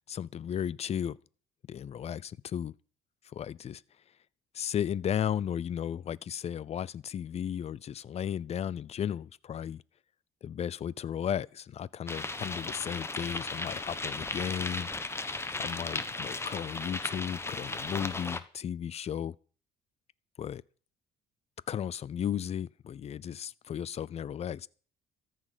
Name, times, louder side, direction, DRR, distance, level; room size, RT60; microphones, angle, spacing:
voice 1, 0.1-1.2 1.7-2.7 3.3-3.8 4.5-9.8 10.4-14.9 15.6-19.3 20.4-20.6 21.7-24.7, left 9 dB, 40° left, 0.5 m, -35 dB
sound 1, 12.1-18.4, left 2 dB, 15° left, 1.2 m, -36 dB
14.0 x 6.5 x 9.2 m
cardioid pair, 110°, 17 cm